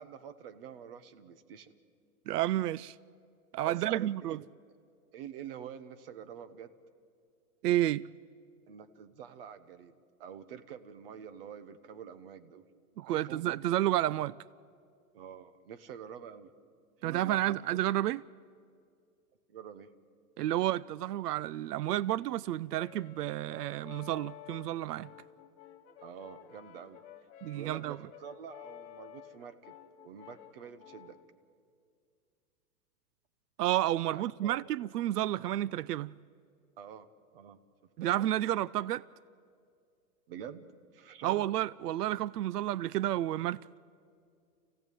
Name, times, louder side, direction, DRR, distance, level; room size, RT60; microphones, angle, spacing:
voice 1, 0.0-1.7 3.7-4.4 5.1-6.7 8.7-9.9 10.2-12.7 13.1-13.5 15.1-16.5 17.0-17.6 19.5-19.9 26.0-27.0 27.5-29.8 30.0-31.2 34.1-34.7 36.8-37.6 38.0-38.2 40.3-40.6 40.9-41.5, right 8 dB, 40° right, 1.1 m, -47 dB
voice 2, 2.3-3.0 3.5-4.4 7.6-8.0 13.0-14.3 17.0-18.2 20.4-25.1 27.4-28.0 33.6-36.1 38.0-39.0 41.2-43.6, right 14 dB, 85° right, 0.6 m, -31 dB
Brass instrument, 22.7-31.3, left 11 dB, 15° left, 0.7 m, -52 dB
28.0 x 16.5 x 9.2 m
supercardioid pair, 170°, 46 cm